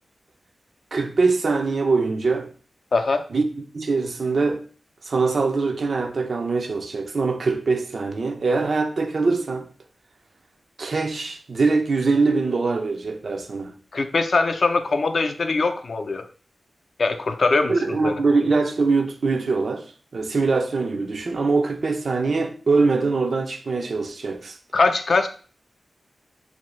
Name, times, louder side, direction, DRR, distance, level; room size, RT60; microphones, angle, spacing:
voice 1, 0.9-2.5 3.3-4.6 5.0-9.7 10.8-13.7 17.7-19.9 20.1-24.6, right 4 dB, 65° right, 0.4 m, -23 dB
voice 2, 2.9-3.2 13.9-16.2 17.0-18.2 24.7-25.3, left 3 dB, 65° left, 0.4 m, -22 dB
2.8 x 2.6 x 3.0 m
cardioid pair, 65°, 0 cm